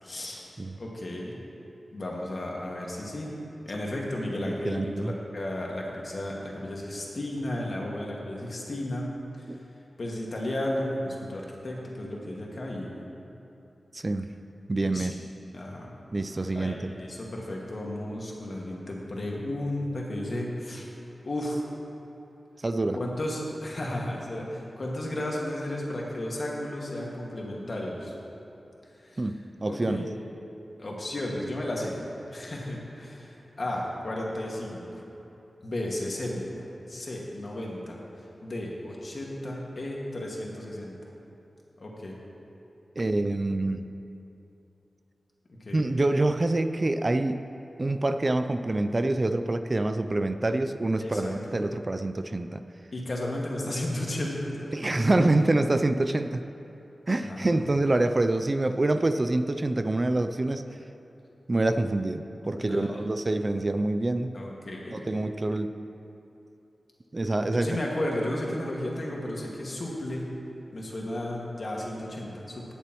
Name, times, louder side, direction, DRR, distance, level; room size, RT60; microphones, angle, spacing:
voice 1, 0.0-0.4 0.8-1.4 1.9-3.3 3.7-9.1 9.4-9.5 10.0-12.9 14.8-15.2 15.5-15.9 16.5-20.9 21.2-21.7 23.0-28.1 29.0-29.2 29.7-30.1 30.8-31.9 32.3-35.0 35.6-40.9 41.8-42.2 45.5-45.8 51.0-51.4 52.9-55.3 57.2-57.4 62.6-63.1 64.3-65.1 67.5-70.2 70.7-72.7, left 1 dB, 55° left, -2 dB, 1.8 m, -34 dB
voice 2, 4.5-5.1 9.5-9.6 13.9-14.3 14.7-15.1 16.1-16.9 22.6-23.0 29.2-30.1 43.0-43.9 45.7-47.4 47.8-52.6 54.7-56.4 57.1-60.6 61.5-64.3 64.9-65.8 67.1-67.7, right 2 dB, 35° right, 9 dB, 0.4 m, -26 dB
19.5 x 6.8 x 3.0 m, 2.9 s
cardioid pair, 60°, 0 cm